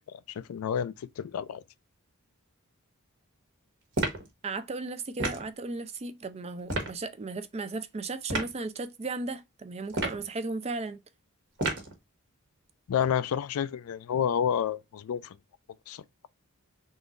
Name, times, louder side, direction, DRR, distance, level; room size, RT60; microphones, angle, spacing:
voice 1, 0.1-1.6 12.9-15.4 15.9-16.0, left 8 dB, 80° left, 0.3 m, -30 dB
sound 1, 3.9-4.3 5.2-5.5 6.7-6.9 8.3-8.5 9.9-10.3 11.6-11.9, right 2 dB, 60° right, 1.3 m, -30 dB
voice 2, 4.4-11.0, right 3 dB, 30° right, 0.4 m, -35 dB
3.8 x 3.0 x 2.4 m
head